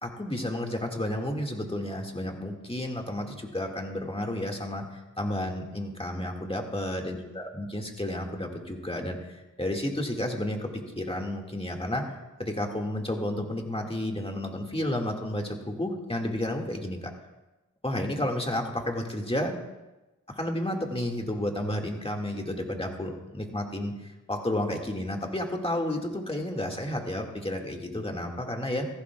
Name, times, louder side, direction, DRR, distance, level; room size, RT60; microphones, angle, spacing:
voice 1, 0.0-12.1 12.4-17.1 17.8-19.5 20.4-28.9, left 1 dB, 20° left, 1 dB, 1.9 m, -31 dB
16.5 x 14.5 x 2.3 m, 1.1 s
cardioid pair, 50°, 32 cm